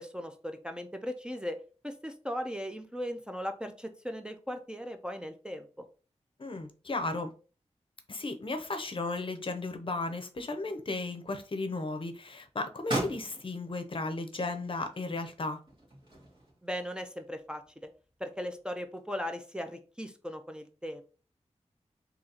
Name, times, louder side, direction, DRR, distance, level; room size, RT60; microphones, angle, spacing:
voice 1, 0.0-1.6 1.8-5.7 16.6-17.9 18.2-21.0, equal, 5° right, 5 dB, 0.4 m, -38 dB
voice 2, 6.4-7.3 8.1-15.6, left 3 dB, 45° left, 7 dB, 0.6 m, -35 dB
sound 1, 10.7-11.6 12.0-19.3, right 1 dB, 45° right, 1.9 m, -40 dB
3.9 x 2.8 x 2.8 m, 0.37 s
wide cardioid pair, 80°, 12 cm